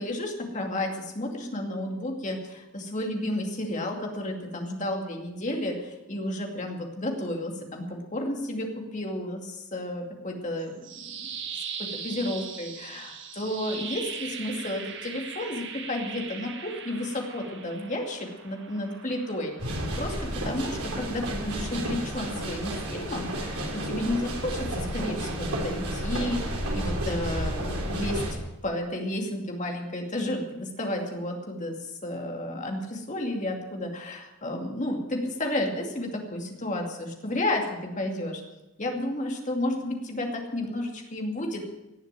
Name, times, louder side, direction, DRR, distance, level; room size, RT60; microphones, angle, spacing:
voice 1, 0.0-11.3 11.9-19.5 20.0-28.2 28.6-38.4 38.8-41.6, left 1 dB, 35° left, 1 dB, 2.5 m, -32 dB
sound 1, 10.6-20.7, right 7 dB, 55° right, 1.6 m, -40 dB
sound 2, 19.6-28.3, right 1 dB, 80° right, 3.7 m, -31 dB
18.0 x 7.2 x 8.9 m, 0.98 s
head